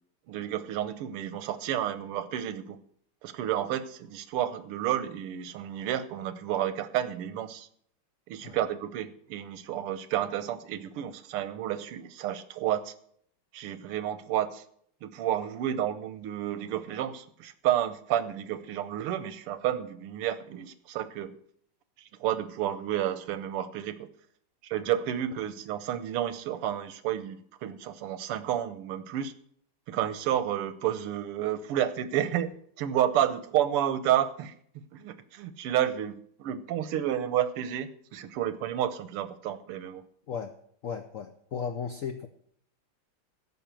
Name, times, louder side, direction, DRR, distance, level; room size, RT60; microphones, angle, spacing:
voice 1, 0.3-2.8 3.2-7.7 8.3-12.9 13.5-14.6 15.0-21.3 22.2-24.1 24.6-29.3 29.9-32.5 32.8-34.5 34.9-40.0, right 11 dB, 90° right, 14 dB, 1.8 m, -30 dB
voice 2, 40.8-42.3, left 6 dB, 75° left, 7 dB, 0.7 m, -35 dB
14.0 x 5.9 x 7.5 m, 0.64 s
omnidirectional pair, 2.4 m